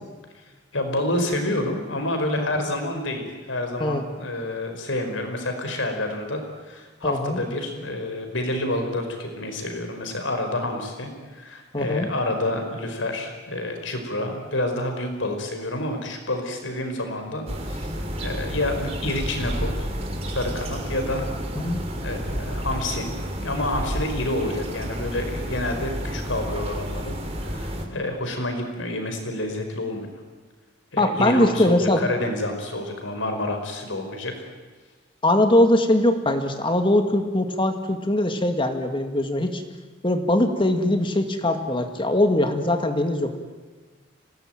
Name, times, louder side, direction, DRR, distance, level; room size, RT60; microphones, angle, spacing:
voice 1, 0.7-17.9 18.2-19.9 20.3-21.3 22.0-23.1 23.4-27.2 27.4-30.1 30.9-34.3, left 1 dB, 85° left, 5 dB, 4.8 m, -28 dB
voice 2, 7.0-7.4 11.7-12.1 21.6-21.8 31.0-32.0 35.2-39.6 40.0-43.4, left 1 dB, 25° left, 6 dB, 2.1 m, -21 dB
sound 1, 17.5-27.9, equal, 35° right, 3.3 m, -30 dB
26.0 x 18.5 x 9.1 m, 1.3 s
head